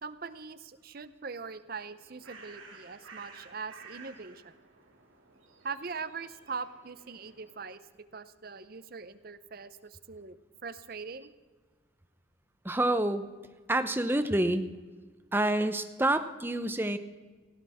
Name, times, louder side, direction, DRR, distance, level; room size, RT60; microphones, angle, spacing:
voice 1, 0.0-4.5 5.6-7.8 8.1-10.4 10.6-11.3, right 5 dB, 50° right, 13 dB, 0.7 m, -41 dB
Bird, 1.8-7.8, right 4 dB, 80° right, 2.5 m, -53 dB
voice 2, 12.6-13.3 13.7-14.7 15.3-17.0, right 1 dB, 10° right, 10 dB, 0.7 m, -27 dB
17.5 x 16.0 x 3.6 m, 1.4 s
head